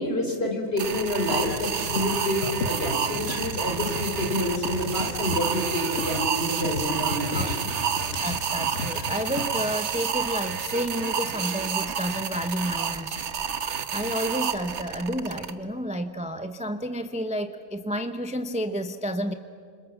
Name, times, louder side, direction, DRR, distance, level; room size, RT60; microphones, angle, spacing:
voice 1, 0.0-7.4, left 1 dB, 50° left, 2 dB, 4.3 m, -28 dB
sound 1, 0.8-15.5, right 7 dB, 65° right, 1.4 m, -29 dB
sound 2, 1.2-9.6, left 3 dB, 65° left, 1.8 m, -35 dB
voice 2, 7.3-7.7 8.2-13.2 13.9-19.3, equal, 5° right, 8 dB, 0.8 m, -30 dB
28.0 x 27.0 x 7.2 m, 2.2 s
omnidirectional pair, 1.3 m